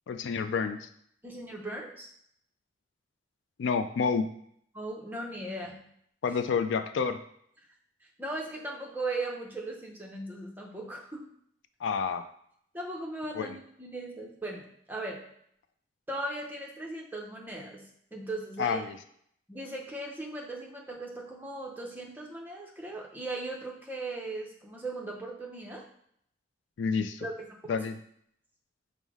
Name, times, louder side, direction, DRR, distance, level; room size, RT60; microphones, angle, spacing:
voice 1, 0.1-0.9 3.6-4.3 6.2-7.2 11.8-12.2 13.4-13.6 18.6-19.0 26.8-27.3 27.7-28.0, left 5 dB, 75° left, 10 dB, 0.3 m, -29 dB
voice 2, 1.2-2.1 4.7-5.8 8.2-11.2 12.7-15.2 16.1-18.9 19.5-25.8 27.2-27.3 27.6-27.8, right 2 dB, 10° right, -1 dB, 0.6 m, -38 dB
5.4 x 2.0 x 4.7 m, 0.68 s
head